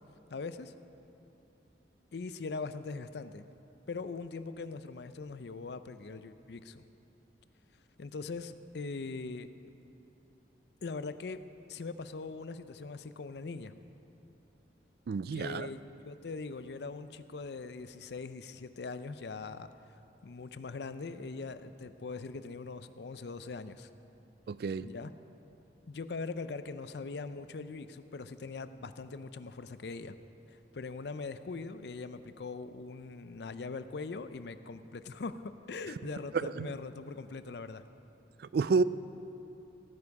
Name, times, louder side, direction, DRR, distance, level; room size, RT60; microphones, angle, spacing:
voice 1, 0.3-0.7 2.1-3.5 3.9-6.8 8.0-9.5 10.8-11.4 11.7-13.7 15.3-19.7 20.2-23.9 24.8-25.1 25.9-30.2 30.5-37.8, left 4 dB, 65° left, 12 dB, 0.5 m, -41 dB
voice 2, 15.1-15.7 24.5-24.9 36.4-36.7 38.4-38.8, right 4 dB, 55° right, 16 dB, 0.3 m, -30 dB
17.0 x 9.9 x 4.7 m, 2.9 s
head